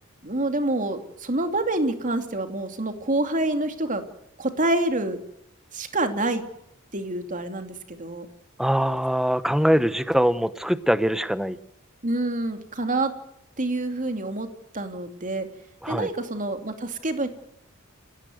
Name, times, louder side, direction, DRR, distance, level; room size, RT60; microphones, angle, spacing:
voice 1, 0.2-4.0 4.4-5.2 5.7-6.4 6.9-8.3 12.0-13.1 13.6-14.5 14.7-15.5 15.9-17.3, right 2 dB, 40° right, 7 dB, 2.8 m, -27 dB
voice 2, 8.6-11.6 15.8-16.1, equal, ahead, 13 dB, 1.0 m, -22 dB
29.5 x 16.5 x 8.0 m, 0.80 s
head